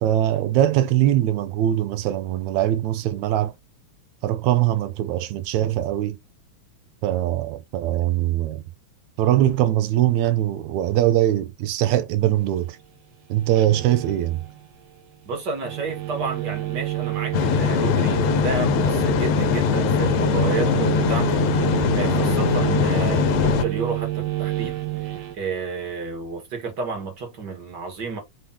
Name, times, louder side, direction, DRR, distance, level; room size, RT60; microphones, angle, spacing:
voice 1, 0.0-3.5 4.2-6.2 7.0-8.6 9.2-12.8 13.3-14.4, right 13 dB, 80° right, 1.9 m, -21 dB
sound 1, 13.4-14.6 15.6-25.4, right 17 dB, 65° right, 2.1 m, -27 dB
voice 2, 15.2-28.2, right 4 dB, 40° right, 2.0 m, -31 dB
sound 2, 17.3-23.7, left 12 dB, 85° left, 2.0 m, -22 dB
5.5 x 3.4 x 2.9 m
omnidirectional pair, 3.4 m